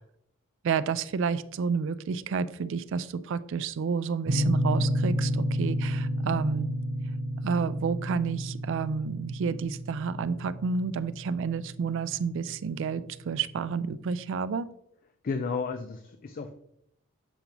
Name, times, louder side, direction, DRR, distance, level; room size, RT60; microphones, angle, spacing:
voice 1, 0.6-6.7 7.4-14.7, right 5 dB, 60° right, 15 dB, 0.3 m, -30 dB
sound 1, 4.2-13.0, equal, 90° right, 0.9 m, -31 dB
voice 2, 15.2-16.5, left 4 dB, 40° left, 8 dB, 0.4 m, -32 dB
7.1 x 5.2 x 2.9 m, 0.72 s
head